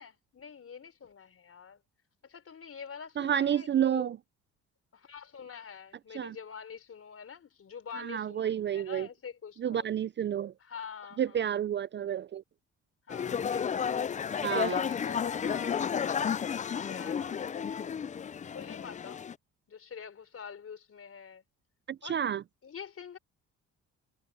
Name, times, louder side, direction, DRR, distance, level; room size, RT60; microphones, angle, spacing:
voice 1, 0.0-1.8 2.2-4.1 4.9-9.9 10.6-11.5 13.1-14.0 14.4-16.2 16.7-18.0 18.4-19.2 19.7-21.4 22.0-22.2 22.6-23.2, left 7 dB, 45° left, 4.8 m, -46 dB
voice 2, 3.2-4.2 6.1-6.4 8.1-9.1 9.6-10.5 11.2-12.4 14.4-14.8 21.9-22.4, right 9 dB, 35° right, 0.4 m, -30 dB
sound 1, 13.1-19.3, left 7 dB, 25° left, 0.4 m, -32 dB
cardioid pair, 85°, 32 cm